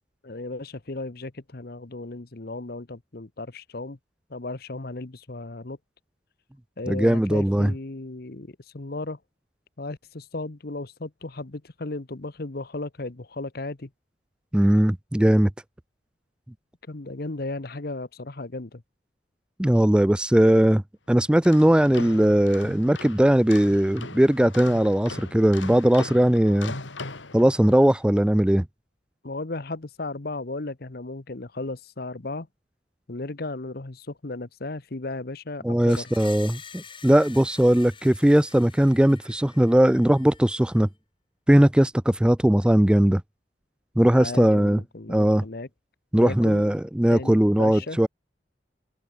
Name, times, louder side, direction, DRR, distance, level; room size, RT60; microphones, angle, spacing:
voice 1, 0.2-4.0 4.3-5.8 6.8-9.2 9.8-13.9 16.9-18.8 29.2-32.5 33.1-36.1 44.1-45.7 46.2-46.6 47.1-48.0, left 2 dB, 55° left, 1.0 m, -35 dB
voice 2, 6.9-7.7 14.5-15.5 19.6-20.8 21.1-26.7 27.3-28.6 35.6-40.9 41.5-43.2 44.0-44.8 45.1-45.4 46.1-48.1, right 1 dB, 5° right, 0.3 m, -19 dB
sound 1, 21.3-28.0, left 3 dB, 80° left, 2.6 m, -40 dB
Screech, 35.9-40.8, left 6 dB, 25° left, 2.5 m, -47 dB
head